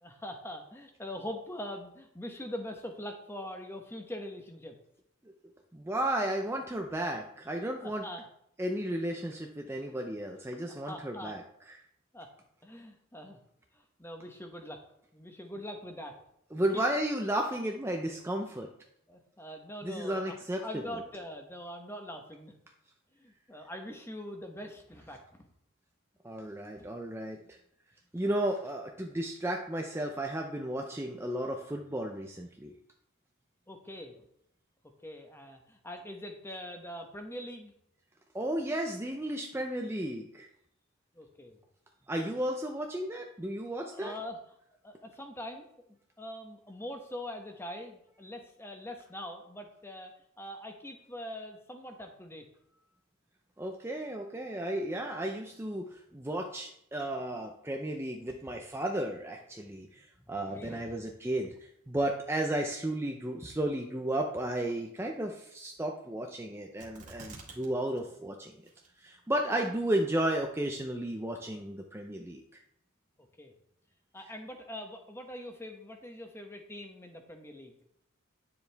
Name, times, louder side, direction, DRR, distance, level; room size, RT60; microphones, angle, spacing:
voice 1, 0.0-4.8 7.8-8.2 9.8-9.9 10.6-11.3 12.1-12.3 12.6-13.4 13.7-14.8 15.1-16.2 16.7-16.8 19.1-20.3 20.6-22.5 23.2-25.5 26.8-26.9 33.7-34.2 35.0-37.7 41.1-41.6 43.9-44.4 44.8-45.7 46.2-52.5 60.2-61.0 73.4-73.5 74.1-77.8, left 1 dB, 10° left, 4 dB, 1.0 m, -43 dB
voice 2, 5.7-8.1 8.6-11.4 11.7-11.8 16.5-18.7 19.8-20.8 26.2-27.6 28.1-32.7 38.3-40.5 42.1-44.1 53.6-68.5 69.0-72.6, right 1 dB, 10° right, 2 dB, 0.6 m, -33 dB
sound 1, 66.8-67.7 68.0-68.1 68.6-69.1 69.6-69.7, right 3 dB, 35° right, 1.9 m, -48 dB
10.0 x 7.1 x 3.4 m, 0.72 s
head